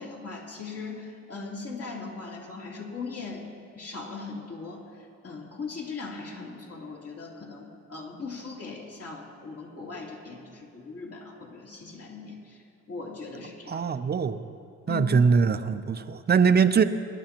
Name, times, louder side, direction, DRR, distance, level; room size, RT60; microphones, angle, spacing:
voice 1, 0.0-3.5 3.7-12.6 12.9-13.9 14.9-15.1, left 4 dB, 50° left, -3 dB, 3.0 m, -39 dB
voice 2, 13.7-14.4 14.9-16.8, right 5 dB, 35° right, 10 dB, 0.6 m, -22 dB
22.5 x 11.0 x 3.0 m, 2.5 s
cardioid pair, 90°, 30 cm